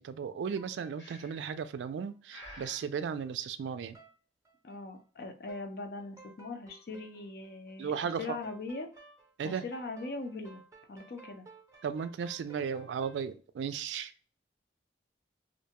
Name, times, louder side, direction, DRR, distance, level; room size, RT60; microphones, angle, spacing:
voice 1, 0.0-4.0 7.8-8.4 9.4-9.6 11.8-14.1, right 6 dB, 80° right, 12 dB, 0.3 m, -35 dB
sound 1, 0.6-2.1 2.4-2.6 2.9-3.4 3.9-4.1 4.5-5.0 5.5-5.7 6.0-13.3, right 3 dB, 20° right, 0.6 m, -56 dB
Breathing, 1.0-1.6 2.3-2.9, left 1 dB, 90° left, 1.0 m, -50 dB
voice 2, 4.6-7.9 8.2-8.9 9.4-10.6 10.9-11.5, left 3 dB, 55° left, 6 dB, 0.5 m, -40 dB
2.6 x 2.2 x 2.8 m, 0.39 s
head